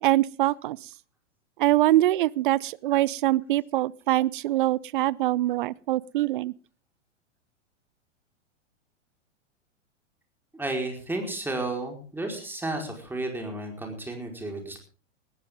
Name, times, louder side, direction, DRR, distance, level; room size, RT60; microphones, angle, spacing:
voice 1, 0.0-0.8 1.6-6.5, right 15 dB, 45° right, 0.6 m, -24 dB
voice 2, 10.5-14.8, right 2 dB, 5° right, 4.7 m, -32 dB
19.5 x 14.5 x 3.7 m
figure-of-eight pair, 100°, 36 cm